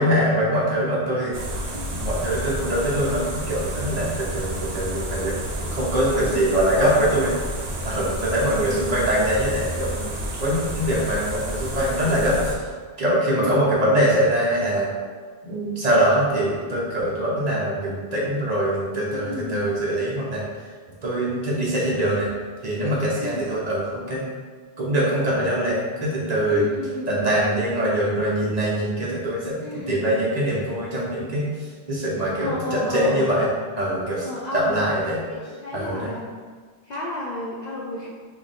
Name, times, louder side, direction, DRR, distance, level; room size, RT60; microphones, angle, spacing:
voice 1, 0.0-1.3 1.9-7.3 7.8-10.1 10.4-12.6 13.0-14.9 15.4-20.4 21.0-22.3 22.6-24.2 24.8-26.7 27.1-29.6 29.9-31.5 31.9-33.5 33.8-34.3 34.5-35.2 35.7-36.1, right 1 dB, 45° right, -5 dB, 0.8 m, -23 dB
sound 1, 1.3-12.5, right 1 dB, 70° right, 1.1 m, -30 dB
voice 2, 8.5-8.8 13.4-13.6 19.1-19.7 23.2-23.5 26.5-27.4 29.6-30.0 32.4-33.2 34.2-34.8 35.3-36.3 36.9-38.1, left 2 dB, 55° left, -5 dB, 0.5 m, -33 dB
3.1 x 2.7 x 4.0 m, 1.6 s
omnidirectional pair, 1.1 m